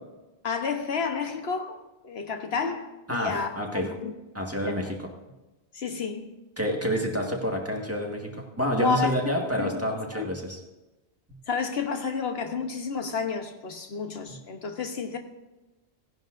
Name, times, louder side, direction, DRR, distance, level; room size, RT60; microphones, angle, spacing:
voice 1, 0.4-4.1 4.6-4.7 5.7-6.3 8.8-9.1 9.6-9.8 10.1-10.3 11.5-15.2, left 5 dB, 70° left, 1.2 m, -30 dB
voice 2, 3.1-3.9 4.3-5.0 6.6-10.6, equal, 15° right, 1.6 m, -28 dB
17.0 x 10.5 x 2.6 m
omnidirectional pair, 1.1 m